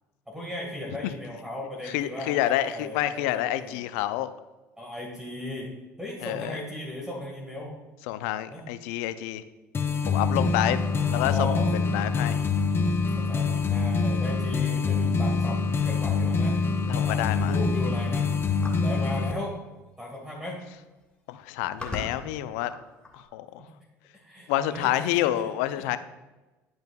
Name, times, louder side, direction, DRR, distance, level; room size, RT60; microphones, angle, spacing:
voice 1, 0.3-3.9 4.8-7.8 8.5-8.6 10.7-11.8 13.1-16.6 17.0-18.3 18.8-19.6 20.0-20.6 23.6-23.7 24.1-25.9, left 1 dB, 5° right, -2 dB, 1.7 m, -37 dB
voice 2, 1.8-4.3 6.2-6.6 8.1-9.4 10.1-10.8 11.1-12.4 16.9-17.6 21.3-22.7 23.1-23.6 24.5-26.0, left 13 dB, 75° left, 12 dB, 0.4 m, -28 dB
sound 1, 9.7-19.3, left 4 dB, 30° left, 0.7 m, -25 dB
sound 2, 18.6-19.1 20.1-20.2 20.5-20.8 21.4-23.3, left 2 dB, 10° left, 1.6 m, -39 dB
11.0 x 5.2 x 2.3 m, 1.1 s
hypercardioid pair, 70°, 8 cm